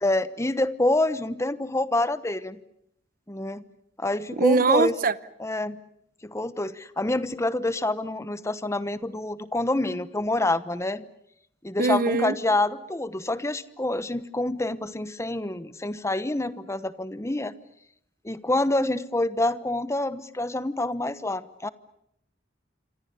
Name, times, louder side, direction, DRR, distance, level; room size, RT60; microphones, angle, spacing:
voice 1, 0.0-2.6 3.3-3.6 4.0-4.9 5.4-5.8 6.2-11.0 11.6-17.5 18.2-21.7, left 2 dB, 15° left, 1.1 m, -27 dB
voice 2, 4.4-5.1 11.8-12.3, right 4 dB, 50° right, 0.9 m, -22 dB
27.0 x 26.0 x 6.9 m
head